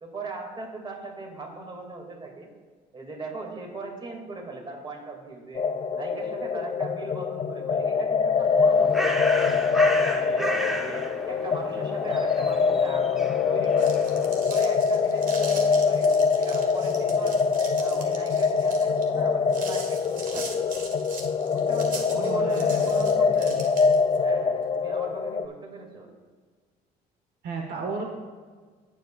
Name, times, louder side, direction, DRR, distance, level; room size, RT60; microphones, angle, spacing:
voice 1, 0.0-2.5 2.9-5.6 5.9-9.8 10.2-14.0 14.2-17.4 17.8-20.6 21.4-23.5 24.2-26.1, right 3 dB, 30° right, 1 dB, 2.5 m, -39 dB
sound 1, 5.5-25.5, left 5 dB, 30° left, 0.4 m, -24 dB
Bird, 8.4-14.5, equal, ahead, 1.0 m, -34 dB
sound 2, 13.5-24.2, right 3 dB, 50° right, 1.7 m, -41 dB
voice 2, 22.1-22.9 23.4-23.7 27.4-28.0, right 4 dB, 70° right, 2 dB, 1.2 m, -34 dB
17.5 x 7.3 x 2.5 m, 1.5 s
cardioid pair, 110°, 17 cm